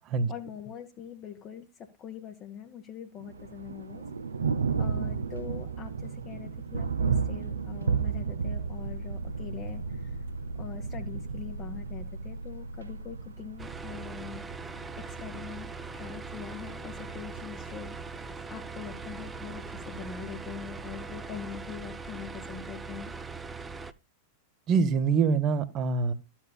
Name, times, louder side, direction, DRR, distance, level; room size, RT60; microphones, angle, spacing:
voice 1, 0.3-4.0 4.8-10.2 10.6-14.8 15.0-15.7 15.9-18.0 18.5-23.1, left 8 dB, 35° left, 0.9 m, -43 dB
Thunder, 3.2-21.2, right 6 dB, 75° right, 0.6 m, -35 dB
sound 1, 8.5-14.0, right 1 dB, 65° left, 1.2 m, -41 dB
sound 2, 13.6-23.9, right 4 dB, 15° right, 0.5 m, -41 dB
voice 2, 24.7-26.1, right 5 dB, 35° right, 0.9 m, -25 dB
13.5 x 7.2 x 2.3 m
figure-of-eight pair, 90°, 0 cm